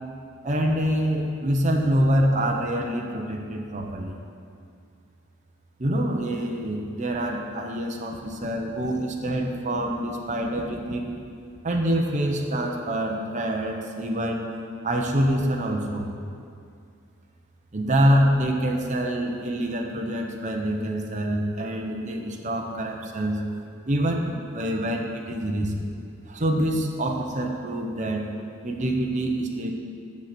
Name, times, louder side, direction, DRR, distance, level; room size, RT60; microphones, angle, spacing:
voice 1, 0.4-4.2 5.8-11.1 11.6-14.4 14.8-16.1 17.7-23.4 23.9-25.7 26.2-28.2 28.6-29.7, equal, 35° right, 1 dB, 0.9 m, -25 dB
10.5 x 6.7 x 6.0 m, 2.4 s
head